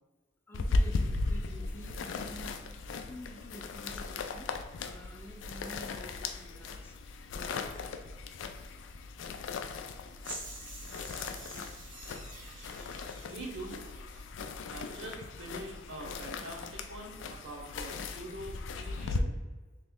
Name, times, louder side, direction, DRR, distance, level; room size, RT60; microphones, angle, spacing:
sound 1, 0.5-19.2, left 3 dB, 85° left, 0.3 m, -37 dB
voice 1, 0.5-2.6 2.9-4.5 4.8-7.0, equal, 10° left, -1 dB, 0.5 m, -49 dB
sound 2, 10.2-14.3, right 2 dB, 85° right, 1.1 m, -47 dB
voice 2, 13.3-13.9 14.7-19.3, right 2 dB, 65° right, -1 dB, 0.8 m, -44 dB
3.1 x 3.0 x 3.6 m, 1.3 s
head